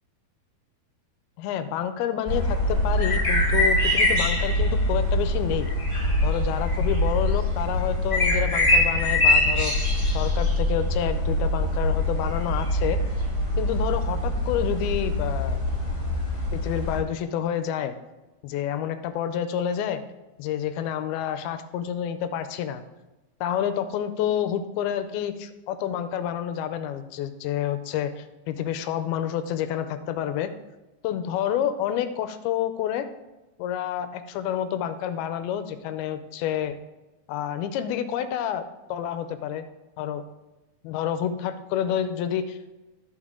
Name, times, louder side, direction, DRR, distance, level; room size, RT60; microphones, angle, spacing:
voice 1, 1.4-5.7 6.2-9.7 10.1-13.0 13.6-15.6 16.5-18.0 18.4-20.0 20.4-22.8 23.4-30.5 31.0-33.1 33.6-36.8 37.3-38.6 38.9-39.6 40.0-40.2 40.8-42.7, left 9 dB, 85° left, 10 dB, 2.5 m, -29 dB
sound 1, 2.3-17.0, left 1 dB, 15° left, 2.7 m, -23 dB
12.0 x 6.8 x 3.6 m, 1.1 s
omnidirectional pair, 4.4 m